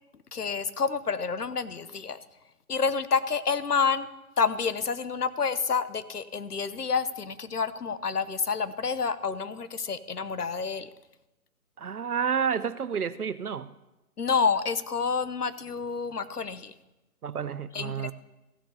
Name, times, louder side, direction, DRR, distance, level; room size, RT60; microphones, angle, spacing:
voice 1, 0.3-2.2 2.7-4.1 4.4-10.9 14.2-16.7 17.7-18.1, left 5 dB, 80° left, 14 dB, 1.0 m, -28 dB
voice 2, 11.8-13.7 17.2-18.1, right 7 dB, 70° right, 16 dB, 0.8 m, -30 dB
15.0 x 6.9 x 6.5 m, 0.98 s
figure-of-eight pair, 140°, 46 cm